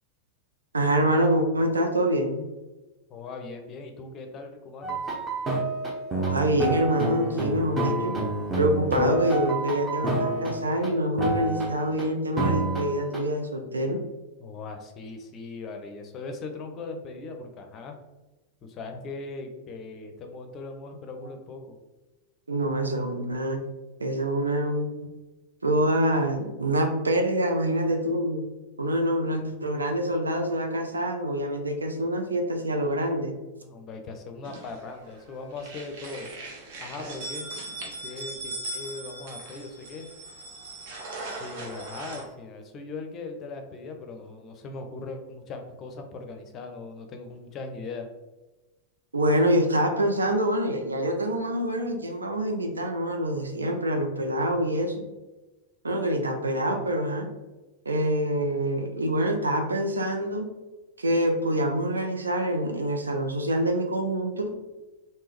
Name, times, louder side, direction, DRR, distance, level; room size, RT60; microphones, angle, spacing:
voice 1, 0.7-2.4 6.2-8.2 8.6-14.0 22.5-23.6 24.0-25.1 25.6-28.4 28.8-33.3 49.1-55.0 55.8-57.3 57.9-60.5 61.0-64.6, right 1 dB, 75° right, 4 dB, 0.5 m, -26 dB
voice 2, 3.1-5.0 14.4-17.9 18.6-21.8 33.6-36.3 36.8-37.5 38.0-40.1 41.4-48.1, left 3 dB, 30° left, 4 dB, 0.5 m, -39 dB
sound 1, 4.8-10.9 11.2-12.0 12.4-13.2, right 2 dB, 20° right, 0.8 m, -28 dB
sound 2, 34.4-35.2 35.5-42.2, right 2 dB, 55° right, 0.9 m, -39 dB
3.6 x 2.7 x 2.9 m, 1.1 s
figure-of-eight pair, 90°, 0 cm